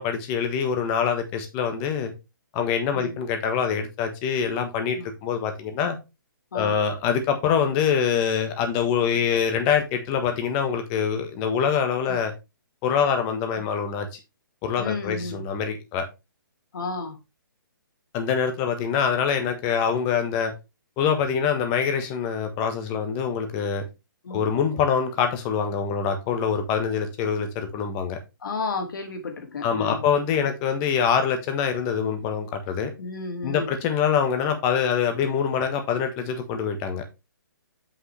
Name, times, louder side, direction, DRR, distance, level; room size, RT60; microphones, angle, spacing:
voice 1, 0.0-2.1 2.5-6.0 6.5-12.3 12.8-14.2 14.6-16.0 18.1-20.5 21.0-23.8 24.3-28.2 29.6-32.9 33.4-37.0, left 7 dB, 20° left, 1.3 m, -25 dB
voice 2, 14.8-15.4 16.7-17.2 24.2-24.5 28.4-30.0 33.0-33.7, left 4 dB, 65° left, 2.4 m, -32 dB
7.6 x 5.7 x 3.3 m
hypercardioid pair, 160°, 12 cm